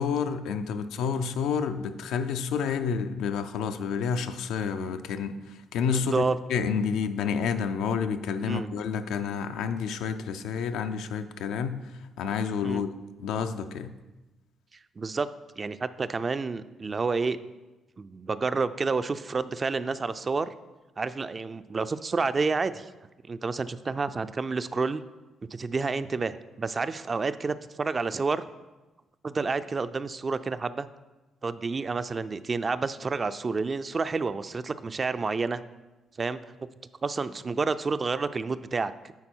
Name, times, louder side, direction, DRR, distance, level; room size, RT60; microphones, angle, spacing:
voice 1, 0.0-6.2 6.5-11.8 12.2-12.9 13.2-13.9, left 6 dB, 90° left, 8 dB, 0.4 m, -29 dB
voice 2, 5.8-6.4 8.4-8.7 12.6-12.8 15.0-15.3 15.6-17.4 18.0-20.5 21.0-22.9 23.3-25.0 25.5-28.4 29.2-30.9 31.4-35.6 36.2-36.4 37.0-39.1, right 4 dB, 35° right, 13 dB, 0.3 m, -29 dB
9.5 x 4.1 x 4.5 m, 1.1 s
cardioid pair, 90°, 0 cm